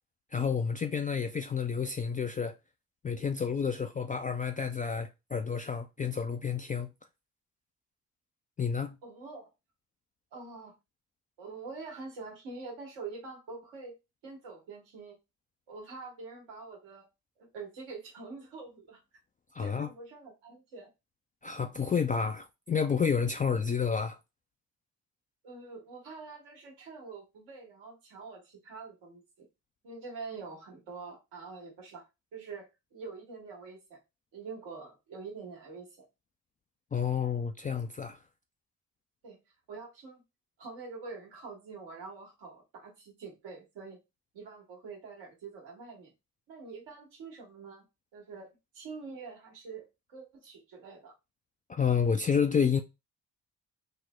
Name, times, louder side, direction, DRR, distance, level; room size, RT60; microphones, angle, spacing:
voice 1, 0.3-2.5 3.0-6.9 8.6-9.0 19.5-19.9 21.4-24.2 36.9-38.2 51.7-52.8, left 6 dB, 20° left, 0.3 m, -30 dB
voice 2, 9.0-9.5 10.3-10.8 11.4-13.9 14.2-15.2 15.7-17.1 17.4-19.0 19.6-20.9 25.4-29.5 29.8-32.0 32.3-34.0 34.3-36.0 39.2-39.4 39.7-40.2 40.6-44.0 44.3-46.1 46.5-47.8 48.1-48.5 48.7-51.1, right 4 dB, 70° right, 1.4 m, -45 dB
4.2 x 2.1 x 3.2 m
hypercardioid pair, 40°, 46 cm